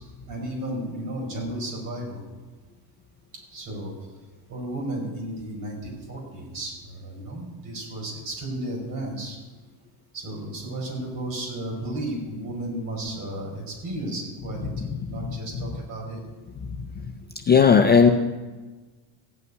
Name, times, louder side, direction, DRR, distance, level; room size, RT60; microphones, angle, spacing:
voice 1, 0.3-2.2 3.5-3.9 4.5-9.4 10.1-16.2, right 1 dB, 40° right, -1 dB, 5.1 m, -33 dB
voice 2, 17.5-18.1, left 6 dB, 25° left, 5 dB, 0.4 m, -14 dB
15.0 x 5.5 x 9.5 m, 1.3 s
cardioid pair, 165°, 48 cm